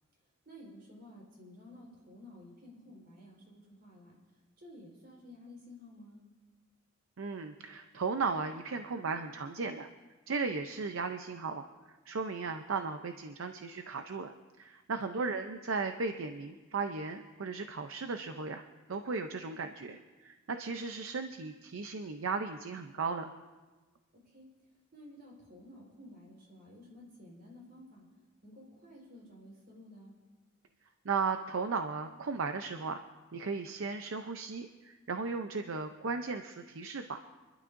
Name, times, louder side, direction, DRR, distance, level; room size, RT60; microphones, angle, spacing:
voice 1, 0.4-4.2 4.6-6.2 15.1-15.5 24.2-24.5 24.9-28.1 28.4-30.2, left 1 dB, 50° right, -2 dB, 4.3 m, -53 dB
voice 2, 7.2-9.9 10.3-11.7 12.1-23.3 31.0-33.0 33.3-37.2, right 4 dB, 75° right, 7 dB, 0.6 m, -36 dB
27.0 x 12.0 x 2.6 m, 1.3 s
head